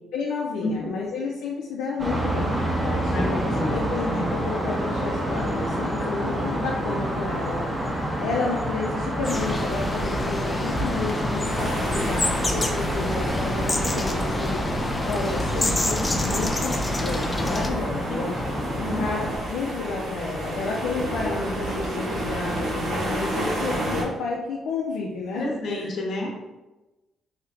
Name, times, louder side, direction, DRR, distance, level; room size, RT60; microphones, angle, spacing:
voice 1, 0.1-2.6 2.8-7.6 8.2-14.6 15.0-18.3 19.0-25.9, left 4 dB, 85° left, -3 dB, 0.4 m, -31 dB
sound 1, 2.0-19.4, equal, 15° right, 0.8 m, -28 dB
voice 2, 3.1-3.8 6.2-6.3 18.8-19.0 25.3-26.3, left 1 dB, 65° left, -1 dB, 0.8 m, -30 dB
sound 2, 9.2-17.7, left 1 dB, 20° left, 0.4 m, -28 dB
sound 3, 11.4-24.0, right 1 dB, 75° right, 1.0 m, -31 dB
3.2 x 2.8 x 2.5 m, 1.1 s
cardioid pair, 90°, 0 cm